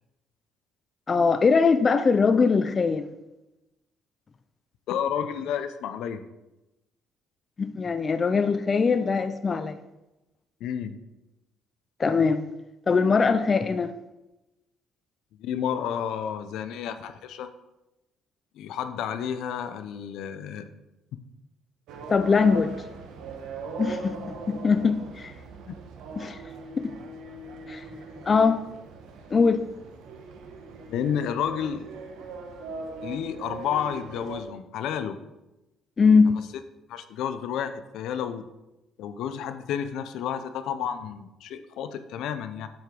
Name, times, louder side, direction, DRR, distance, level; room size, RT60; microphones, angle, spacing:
voice 1, 1.1-3.1 7.6-9.8 12.0-12.5 12.9-13.9 22.1-22.7 23.8-25.3 26.2-26.4 26.8-26.9 27.7-27.8 28.3-28.6 29.3-29.6 36.0-36.4, left 5 dB, 25° left, 9 dB, 0.4 m, -22 dB
voice 2, 4.9-6.2 10.6-11.0 15.4-17.5 18.5-20.7 25.7-25.8 30.9-31.9 33.0-35.2 36.3-36.4 36.9-38.4 39.0-42.7, left 8 dB, 75° left, 10 dB, 0.6 m, -31 dB
sound 1, 21.9-34.4, right 3 dB, 80° right, 1.0 m, -40 dB
7.8 x 4.8 x 5.2 m, 0.97 s
cardioid pair, 145°, 0 cm